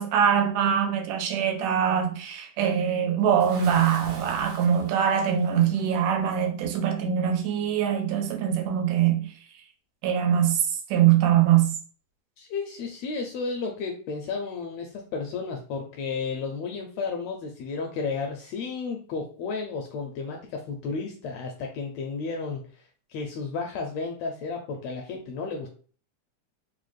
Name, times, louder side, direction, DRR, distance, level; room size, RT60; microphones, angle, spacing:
voice 1, 0.0-9.3 10.0-11.8, right 9 dB, 85° right, 2.2 m, -23 dB
Bathtub (filling or washing) / Splash splatter, 3.4-5.9, right 3 dB, 70° right, 1.3 m, -45 dB
voice 2, 12.4-22.6 23.1-25.7, left 4 dB, 80° left, 1.5 m, -32 dB
4.8 x 2.1 x 3.1 m
omnidirectional pair, 3.4 m